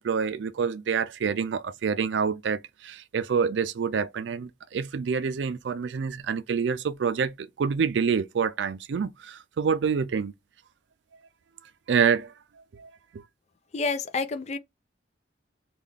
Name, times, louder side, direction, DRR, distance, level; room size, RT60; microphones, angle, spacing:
voice 1, 0.0-10.3 11.9-12.3 12.7-13.2, right 6 dB, 80° right, 0.4 m, -27 dB
voice 2, 13.7-14.6, left 4 dB, 40° left, 0.4 m, -28 dB
3.7 x 2.4 x 3.4 m
head